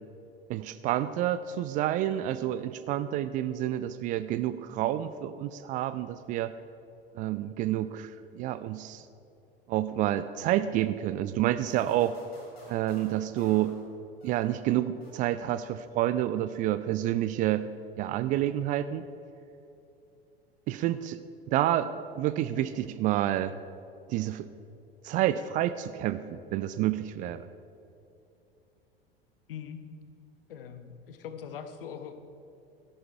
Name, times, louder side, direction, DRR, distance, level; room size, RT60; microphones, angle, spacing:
voice 1, 0.5-6.5 7.2-9.0 9.7-12.2 12.7-13.8 14.2-17.7 18.0-19.1 20.7-21.2 21.5-23.5 24.1-24.5 25.0-27.5, right 13 dB, 25° right, 13 dB, 0.4 m, -29 dB
sound 1, 11.7-14.6 15.0-15.7, left 1 dB, 80° left, 2.9 m, -52 dB
voice 2, 29.5-29.9 30.5-32.2, left 8 dB, 65° left, 9 dB, 1.1 m, -41 dB
13.0 x 11.0 x 4.6 m, 2.8 s
figure-of-eight pair, 80°, 30 cm